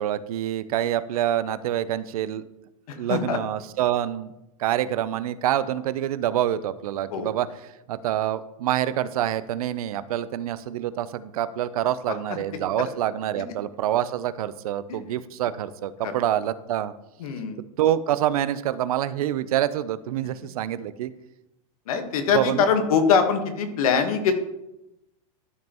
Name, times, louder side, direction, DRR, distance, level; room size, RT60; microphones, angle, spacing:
voice 1, 0.0-2.4 3.0-4.3 4.6-16.9 17.8-21.1 22.3-22.7, right 11 dB, 85° right, 14 dB, 0.6 m, -26 dB
voice 2, 2.9-3.4 7.1-7.3 16.0-16.1 17.2-17.6 21.9-24.3, left 6 dB, 80° left, 6 dB, 1.3 m, -23 dB
12.5 x 5.3 x 3.0 m, 0.91 s
supercardioid pair, 155°, 18 cm